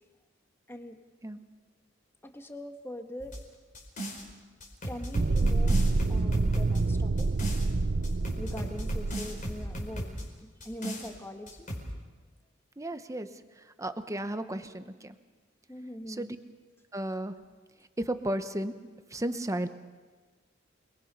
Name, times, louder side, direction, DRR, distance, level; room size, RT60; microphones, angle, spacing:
voice 1, 2.2-3.4 4.8-5.8 6.1-7.3 8.3-11.7 15.7-16.4, left 1 dB, 10° left, 5 dB, 1.6 m, -42 dB
sound 1, 3.2-4.3 4.6-7.7 8.0-10.3 10.6-11.1 11.5-11.9, equal, 40° left, 4.6 m, -37 dB
sound 2, 5.1-9.9, right 3 dB, 55° right, 0.6 m, -27 dB
voice 2, 12.8-13.3 13.8-15.1 16.2-16.4 16.9-17.3 18.0-18.7 19.1-19.7, right 1 dB, 15° right, 10 dB, 1.0 m, -33 dB
28.5 x 21.5 x 5.6 m, 1.4 s
head